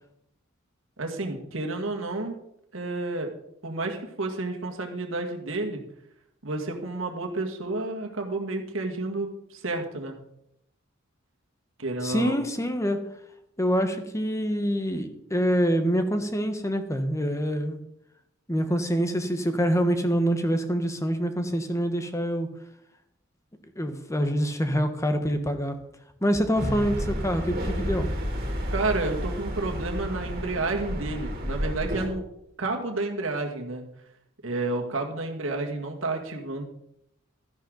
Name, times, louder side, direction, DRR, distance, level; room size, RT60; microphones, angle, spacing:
voice 1, 1.0-2.4 2.7-3.3 3.6-5.8 6.4-10.2 11.8-12.4 28.7-32.2 32.6-33.9 34.4-36.6, right 2 dB, 80° right, 2 dB, 1.9 m, -30 dB
voice 2, 12.0-13.0 13.6-17.8 18.5-22.5 23.8-25.8 26.2-28.1, equal, 15° left, 8 dB, 1.1 m, -26 dB
sound 1, 26.5-32.1, equal, 50° right, 2.6 m, -31 dB
13.0 x 11.0 x 3.9 m, 0.76 s
head